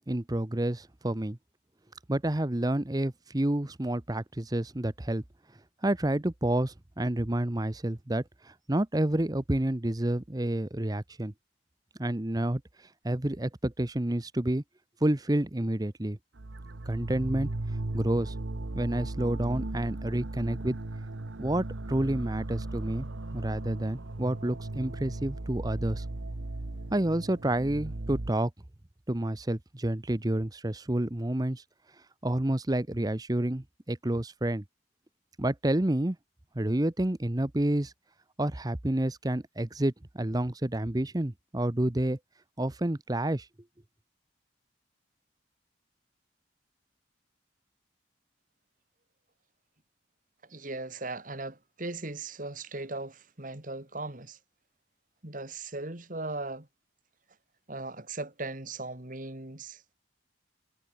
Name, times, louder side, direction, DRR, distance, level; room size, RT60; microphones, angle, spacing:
voice 1, 0.1-1.4 2.1-5.2 5.8-11.3 12.0-12.6 13.0-14.6 15.0-16.2 16.9-17.5 17.9-18.3 18.7-20.8 21.4-23.1 23.3-26.0 26.9-28.5 29.1-31.6 32.2-34.6 35.4-36.2 36.5-37.9 38.4-42.2 42.6-43.5, right 1 dB, 20° right, 0.8 m, -29 dB
sound 1, 16.4-28.3, right 2 dB, 90° right, 1.2 m, -37 dB
voice 2, 50.4-54.4 55.2-56.7 57.7-59.9, right 2 dB, 45° right, 2.5 m, -38 dB
head